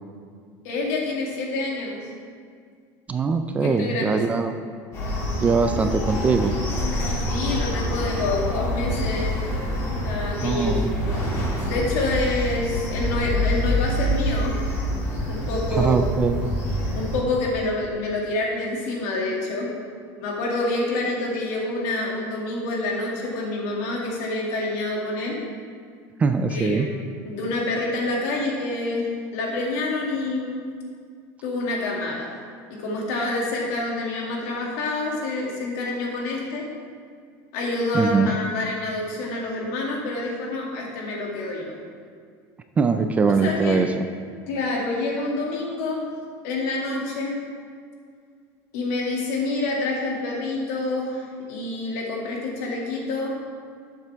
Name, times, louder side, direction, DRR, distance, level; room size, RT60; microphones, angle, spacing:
voice 1, 0.6-2.1 3.6-4.2 4.5-4.6 7.3-9.4 10.0-10.9 11.7-14.6 15.3-16.0 16.9-19.7 20.2-25.4 26.5-30.6 31.4-32.3 32.7-36.6 37.5-41.8 43.4-43.8 44.5-46.0 46.4-47.4 48.7-53.3, left 2 dB, 70° left, -2 dB, 2.3 m, -27 dB
voice 2, 3.1-4.6 5.4-6.6 10.4-10.9 15.7-16.5 26.2-26.9 37.9-38.3 42.8-44.1, right 5 dB, 15° right, 7 dB, 0.3 m, -22 dB
sound 1, 4.9-17.2, left 1 dB, 35° left, 2.4 m, -26 dB
12.0 x 7.4 x 3.5 m, 2.1 s
cardioid pair, 160°, 9 cm